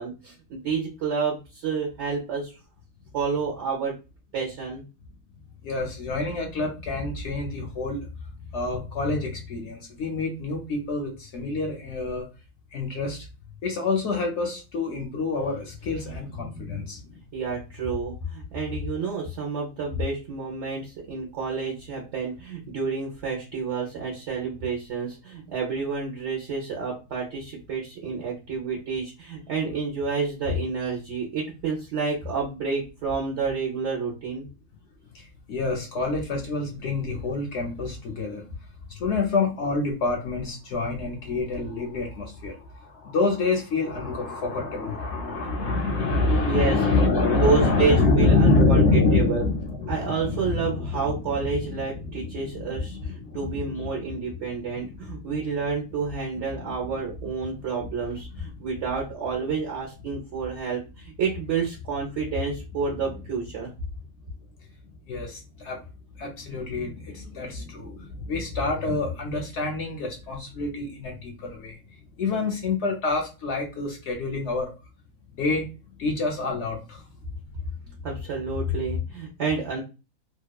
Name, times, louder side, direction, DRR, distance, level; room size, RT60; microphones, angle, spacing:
voice 1, 0.0-2.6 3.1-3.9 4.3-4.8 17.3-34.5 46.4-47.0 47.3-49.4 49.9-63.7 78.0-79.8, right 4 dB, 60° right, -2 dB, 0.9 m, -29 dB
voice 2, 5.6-8.1 8.5-12.3 12.7-13.3 13.6-17.2 35.1-38.4 38.9-55.3 56.6-56.7 65.1-65.8 66.2-74.7 75.3-75.7 76.0-77.0, left 3 dB, 65° left, 2 dB, 0.7 m, -27 dB
2.9 x 2.2 x 2.2 m, 0.30 s
omnidirectional pair, 1.5 m